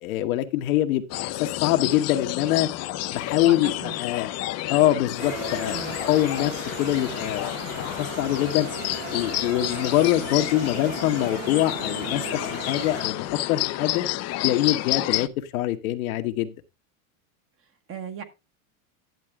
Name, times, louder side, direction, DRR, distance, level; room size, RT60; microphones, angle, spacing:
voice 1, 0.0-2.7 3.1-4.3 4.7-6.5 6.8-7.5 7.8-8.7 9.1-14.1 14.4-16.5, left 14 dB, 80° left, 7 dB, 1.3 m, -24 dB
sound 1, 1.1-15.3, left 16 dB, 40° left, 0.6 m, -30 dB
voice 2, 3.4-4.0 5.7-6.0 17.9-18.2, right 7 dB, 30° right, 9 dB, 1.4 m, -36 dB
sound 2, 5.2-13.1, right 7 dB, 80° right, 2.6 m, -37 dB
11.0 x 7.6 x 3.5 m, 0.26 s
supercardioid pair, 125°, 42 cm